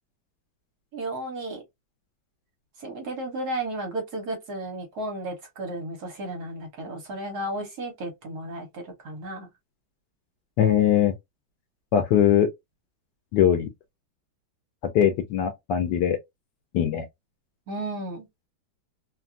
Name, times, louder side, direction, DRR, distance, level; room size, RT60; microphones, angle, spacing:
voice 1, 0.9-1.6 2.8-9.5 17.7-18.3, right 1 dB, 60° right, 1.4 m, -33 dB
voice 2, 10.6-11.1 11.9-12.5 13.3-13.7 14.9-16.2 16.7-17.0, left 10 dB, 75° left, 1.1 m, -21 dB
3.1 x 2.3 x 2.4 m
omnidirectional pair, 2.1 m